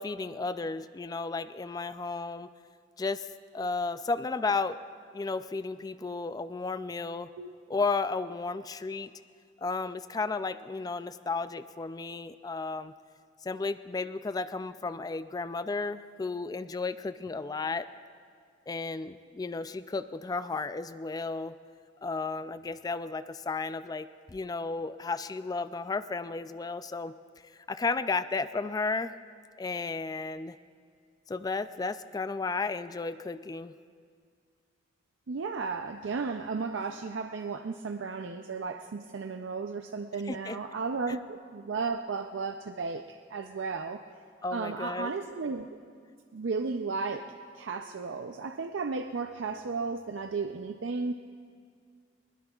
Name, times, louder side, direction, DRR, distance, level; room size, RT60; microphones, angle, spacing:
voice 1, 0.0-2.5 3.0-3.3 3.5-4.8 5.1-7.3 7.7-9.1 9.6-12.9 13.4-17.9 18.7-21.6 22.0-27.1 27.7-29.1 29.6-30.6 31.3-33.7 40.3-40.6 44.4-45.1, left 3 dB, 20° left, 13 dB, 0.3 m, -33 dB
voice 2, 35.3-44.0 44.5-45.8 46.3-51.1, right 4 dB, 85° right, 6 dB, 0.5 m, -34 dB
21.0 x 20.0 x 2.4 m, 2.1 s
head